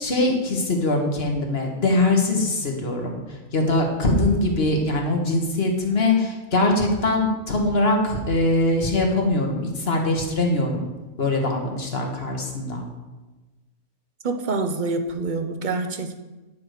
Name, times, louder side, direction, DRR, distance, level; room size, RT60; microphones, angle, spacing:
voice 1, 0.0-3.2 3.5-10.8 11.2-12.8, left 2 dB, 45° left, 1 dB, 1.6 m, -22 dB
voice 2, 14.2-16.1, right 3 dB, 40° right, 7 dB, 0.7 m, -26 dB
10.5 x 4.8 x 6.6 m, 1.2 s
omnidirectional pair, 1.6 m